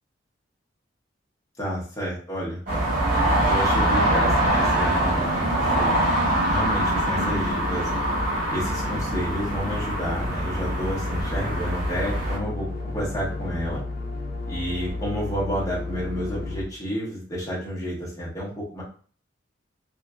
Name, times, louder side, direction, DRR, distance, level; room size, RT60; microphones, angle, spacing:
voice 1, 1.6-2.6 3.5-5.9 6.5-7.9 8.5-12.7 12.9-13.8 14.4-18.8, equal, 20° left, -6 dB, 0.9 m, -30 dB
sound 1, 2.7-12.4, right 1 dB, 50° right, 1.4 m, -24 dB
sound 2, 3.0-16.6, left 2 dB, 50° left, 0.7 m, -34 dB
3.0 x 2.4 x 2.3 m, 0.43 s
head